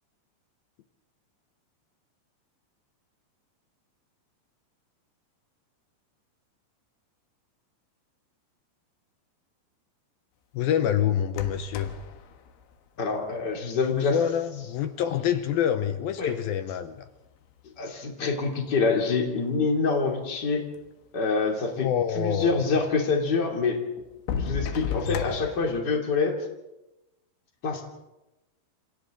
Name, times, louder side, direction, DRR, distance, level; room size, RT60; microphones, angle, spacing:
voice 1, 10.5-11.9 13.9-17.0 21.8-22.6 25.1-25.3, left 9 dB, 75° left, 9 dB, 2.4 m, -27 dB
sound 1, 11.3-13.6 14.6-14.7 15.3-16.5 17.1-18.0 18.8-18.9 19.1-19.2 19.8-19.9 20.1-20.9 22.5-22.6 23.2-23.3 24.0-25.8, left 6 dB, 90° left, 3.8 m, -35 dB
voice 2, 13.0-14.2 16.2-16.3 17.8-20.7 21.1-21.9 22.2-23.8 24.4-26.4 27.6-27.8, left 4 dB, 25° left, 1 dB, 3.0 m, -26 dB
28.5 x 27.0 x 3.9 m, 0.97 s
omnidirectional pair, 5.0 m